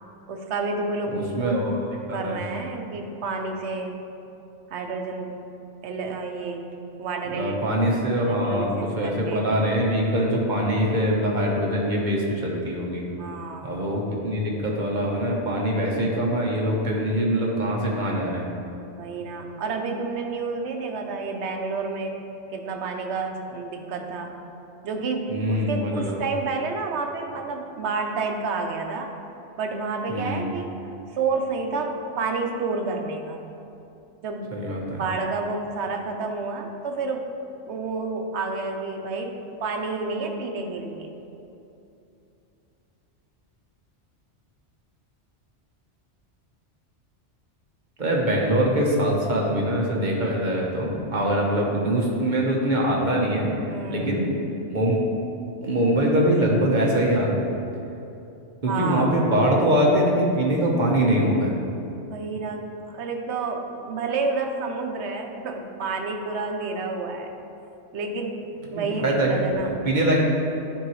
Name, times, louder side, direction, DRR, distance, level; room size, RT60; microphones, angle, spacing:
voice 1, 0.3-1.7 2.1-4.0 4.7-5.3 5.8-6.7 7.0-7.6 8.2-9.5 13.2-13.7 19.0-22.1 22.5-24.3 24.8-29.1 29.6-33.4 34.2-34.5 34.9-37.3 37.7-41.1 53.7-54.1 58.7-59.1 62.1-67.3 67.9-69.8, right 4 dB, 70° right, 3 dB, 1.0 m, -30 dB
voice 2, 1.1-1.8 2.1-2.4 7.3-13.0 13.6-18.5 25.3-26.2 30.1-30.5 34.5-35.0 48.0-54.3 54.7-55.0 55.6-57.4 58.6-61.5 68.7-70.2, equal, 45° right, -2 dB, 1.1 m, -23 dB
10.0 x 4.7 x 3.1 m, 2.8 s
omnidirectional pair, 1.2 m